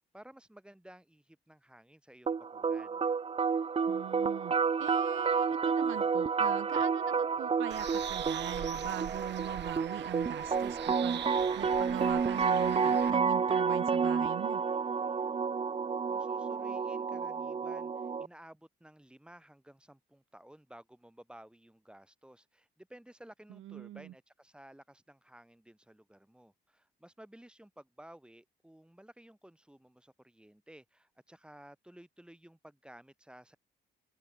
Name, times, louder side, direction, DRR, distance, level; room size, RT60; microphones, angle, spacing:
voice 1, 0.1-3.0 16.0-33.6, right 1 dB, 5° right, 6.1 m, -55 dB
sound 1, 2.3-18.3, right 5 dB, 30° right, 0.8 m, -30 dB
voice 2, 3.8-14.6 23.5-24.1, right 13 dB, 80° right, 3.2 m, -41 dB
Bird, 7.7-13.1, right 11 dB, 60° right, 0.9 m, -43 dB
cardioid pair, 90°, 20 cm